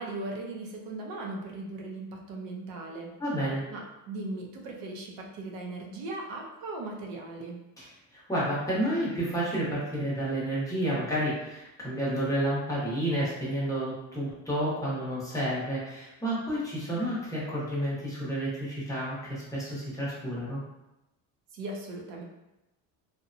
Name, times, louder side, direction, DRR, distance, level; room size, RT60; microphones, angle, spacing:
voice 1, 0.0-3.1 3.7-7.6 21.5-22.2, right 2 dB, 70° right, 0 dB, 0.6 m, -38 dB
voice 2, 3.2-3.6 7.8-7.9 8.1-20.6, right 1 dB, 10° left, -8 dB, 0.7 m, -30 dB
2.8 x 2.1 x 2.5 m, 0.94 s
cardioid pair, 155°, 35 cm